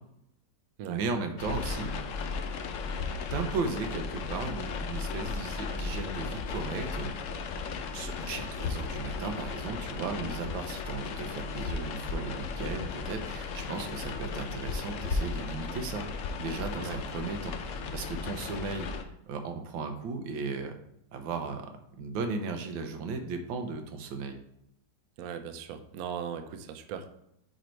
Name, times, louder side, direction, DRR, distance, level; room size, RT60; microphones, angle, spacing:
voice 1, 0.9-1.9 3.3-7.1 7.9-16.1 16.4-20.8 21.1-24.4, right 4 dB, 85° right, 6 dB, 1.5 m, -36 dB
sound 1, 1.4-19.0, left 4 dB, 75° left, 0.7 m, -35 dB
sound 2, 10.2-15.5, right 1 dB, 30° left, 1.3 m, -54 dB
voice 2, 25.2-27.1, right 7 dB, 70° right, 8 dB, 1.0 m, -38 dB
5.0 x 4.5 x 4.4 m, 0.79 s
omnidirectional pair, 2.0 m